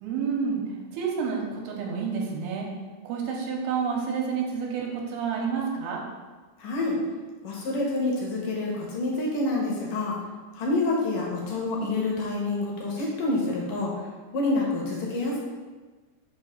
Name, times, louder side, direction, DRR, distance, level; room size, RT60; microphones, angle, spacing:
voice 1, 0.0-0.6 0.9-2.7 3.0-6.0, right 6 dB, 85° right, -1 dB, 2.7 m, -29 dB
voice 2, 6.6-7.0 7.4-10.1 10.5-13.9 14.3-15.4, left 2 dB, 65° left, -3 dB, 2.3 m, -27 dB
6.5 x 2.8 x 5.6 m, 1.3 s
omnidirectional pair, 4.6 m